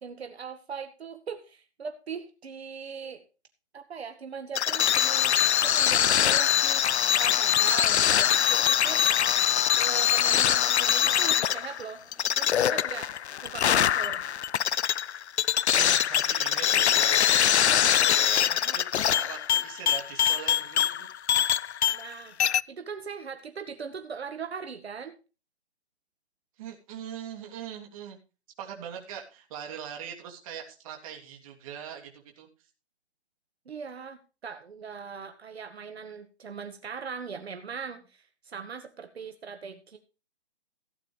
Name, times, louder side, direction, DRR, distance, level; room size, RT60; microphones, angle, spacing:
voice 1, 0.0-3.2 3.7-5.4 5.6-9.1 9.7-12.0 12.4-13.1 13.4-14.2 21.9-22.4 22.7-25.2 33.7-40.0, right 6 dB, 70° right, 7 dB, 2.0 m, -40 dB
sound 1, 4.6-22.1 22.4-22.6, left 9 dB, 80° left, 0.6 m, -23 dB
sound 2, 5.1-12.8, left 1 dB, 10° left, 3.9 m, -58 dB
voice 2, 15.7-21.5 26.6-28.2 28.6-32.5, right 9 dB, 30° right, 2 dB, 3.1 m, -41 dB
16.5 x 9.6 x 3.3 m, 0.32 s
hypercardioid pair, 150°, 33 cm